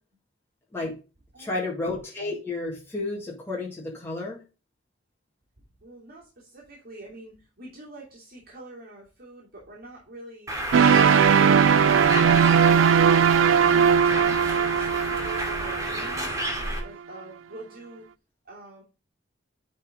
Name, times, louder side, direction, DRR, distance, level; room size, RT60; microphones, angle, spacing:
voice 1, 1.4-4.4, left 2 dB, 10° left, -4 dB, 2.0 m, -31 dB
voice 2, 5.8-10.6 13.7-16.4 16.8-18.0 18.4-18.8, right 2 dB, 50° right, -4 dB, 2.8 m, -45 dB
Bird, 10.5-16.8, right 1 dB, 20° right, 2.4 m, -30 dB
sound 1, 10.7-16.6, right 7 dB, 75° right, 0.3 m, -19 dB
10.0 x 4.4 x 3.7 m, 0.32 s
head